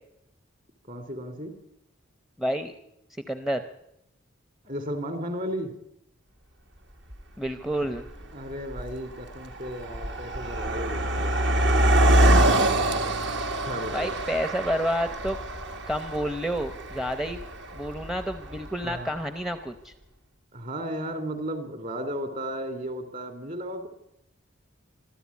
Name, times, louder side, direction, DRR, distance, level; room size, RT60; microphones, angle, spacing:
voice 1, 0.9-1.6 4.6-5.7 8.3-12.3 13.7-14.2 18.8-19.1 20.5-23.9, equal, 40° right, 8 dB, 2.9 m, -35 dB
voice 2, 2.4-2.7 3.3-3.6 7.4-8.1 13.9-15.4 15.9-17.4 17.7-19.9, equal, ahead, 9 dB, 0.7 m, -29 dB
Car passing by, 7.1-7.2 8.0-8.2 8.5-18.9, right 1 dB, 55° right, 1.7 m, -25 dB
25.0 x 13.5 x 8.4 m, 0.80 s
head